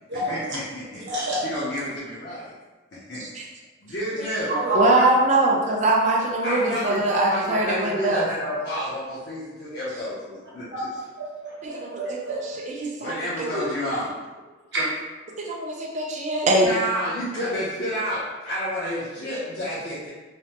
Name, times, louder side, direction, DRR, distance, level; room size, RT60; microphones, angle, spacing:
voice 1, 0.1-1.0 1.4-2.5 2.9-3.2 3.8-4.5 6.4-10.9 13.0-14.2 16.6-20.1, equal, 55° left, -9 dB, 0.6 m, -30 dB
voice 2, 1.1-1.4 4.5-5.1 10.7-10.9 11.2-12.5 14.7-15.0, right 1 dB, 60° right, -6 dB, 0.9 m, -28 dB
voice 3, 4.5-8.3 11.6-12.4 12.7-13.6 15.4-16.7, right 2 dB, 40° right, -1 dB, 0.4 m, -22 dB
3.2 x 2.0 x 2.8 m, 1.2 s
head